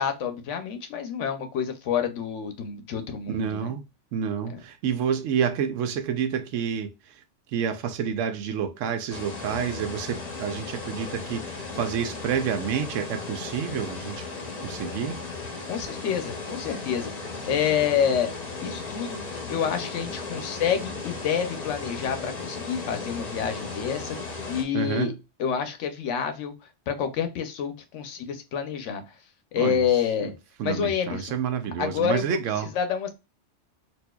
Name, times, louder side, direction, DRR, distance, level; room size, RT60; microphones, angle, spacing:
voice 1, 0.0-3.7 4.5-4.6 15.7-18.3 18.6-25.1 25.4-26.5 26.9-29.1 29.5-30.3 30.6-31.3 31.8-33.1, left 8 dB, 80° left, 1.0 m, -28 dB
voice 2, 3.3-3.8 4.1-7.2 7.5-14.2 14.6-15.2 24.7-25.1 29.6-29.8 30.2-30.3 30.6-32.7, right 7 dB, 85° right, 0.9 m, -29 dB
sound 1, 9.1-24.6, left 3 dB, 40° left, 0.8 m, -36 dB
4.2 x 2.5 x 2.2 m
omnidirectional pair, 1.3 m